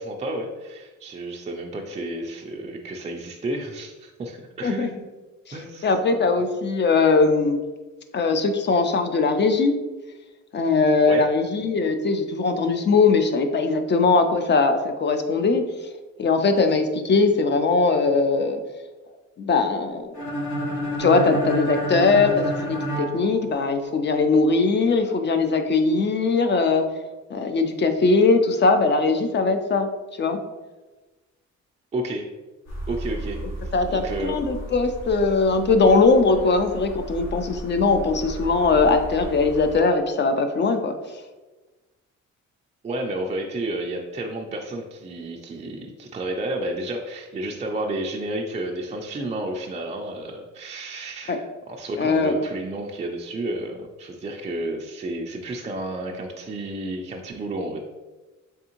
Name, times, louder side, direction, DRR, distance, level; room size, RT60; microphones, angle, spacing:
voice 1, 0.0-5.0 5.5-6.1 11.1-11.3 31.9-32.3 32.9-34.4 42.8-57.8, right 1 dB, 25° right, 0 dB, 0.3 m, -31 dB
voice 2, 5.8-7.6 8.1-9.7 10.5-15.6 16.2-18.6 19.4-20.1 21.0-26.9 27.3-29.9 30.2-30.4 33.7-41.0 51.3-51.4 52.0-52.3, left 4 dB, 40° left, 7 dB, 0.5 m, -20 dB
sound 1, 20.1-24.0, right 1 dB, 80° left, 1.3 m, -29 dB
sound 2, 32.7-39.8, right 1 dB, 60° left, 1.1 m, -35 dB
3.5 x 3.4 x 2.9 m, 1.2 s
cardioid pair, 90°, 30 cm